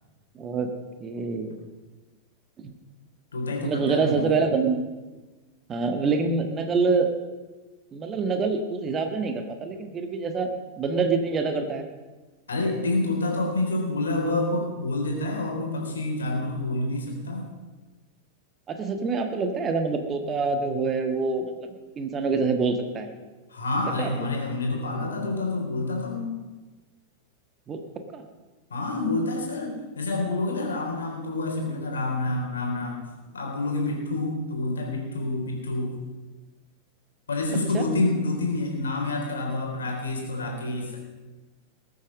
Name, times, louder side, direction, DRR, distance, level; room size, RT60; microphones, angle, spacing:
voice 1, 0.4-0.7 1.0-1.6 2.6-2.7 3.6-4.8 5.7-7.1 7.9-10.5 10.8-11.8 18.7-21.7 22.0-23.1 24.0-24.1 27.7-27.8 28.1-28.3 37.7-37.8, right 4 dB, 25° right, 6 dB, 1.5 m, -26 dB
voice 2, 3.3-4.3 12.5-17.5 23.5-26.3 28.7-33.0 33.3-36.0 37.3-41.0, left 2 dB, 70° left, 0 dB, 3.9 m, -28 dB
20.0 x 8.1 x 6.4 m, 1.2 s
figure-of-eight pair, 90°, 0 cm